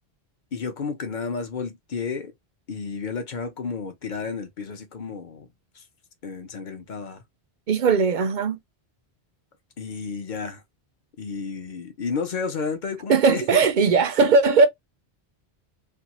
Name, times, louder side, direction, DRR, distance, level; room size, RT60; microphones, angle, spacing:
voice 1, 0.5-2.3 2.7-5.5 5.8-5.9 6.2-7.2 9.8-10.6 11.2-13.6, left 5 dB, 50° left, 0.7 m, -32 dB
voice 2, 7.7-8.6 13.1-14.7, right 4 dB, 60° right, 0.6 m, -18 dB
2.6 x 2.3 x 2.8 m
omnidirectional pair, 1.1 m